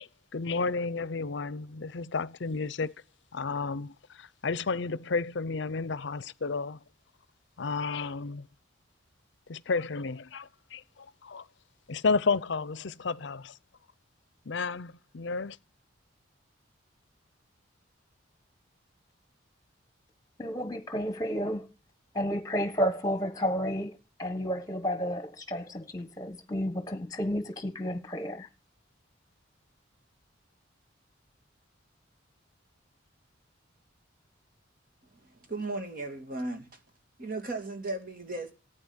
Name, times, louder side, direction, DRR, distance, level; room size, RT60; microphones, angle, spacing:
voice 1, 0.0-2.9 3.3-6.8 7.6-8.5 9.5-11.4 11.9-13.6 14.5-15.6, left 4 dB, 60° left, 0.6 m, -32 dB
voice 2, 20.4-21.7 22.1-28.5, equal, 20° left, 1.4 m, -31 dB
voice 3, 35.1-36.7 37.2-38.5, right 2 dB, 45° right, 2.5 m, -36 dB
14.5 x 9.0 x 8.1 m
head